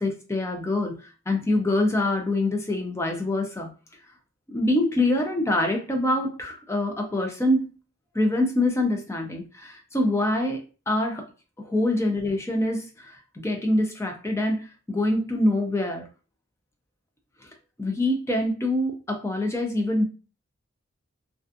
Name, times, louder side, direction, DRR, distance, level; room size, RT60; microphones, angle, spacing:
voice 1, 0.0-3.7 4.5-7.7 8.1-11.3 11.6-16.1 17.4-17.5 17.8-20.0, left 1 dB, 15° left, 2 dB, 0.4 m, -25 dB
2.4 x 2.3 x 2.5 m, 0.34 s
head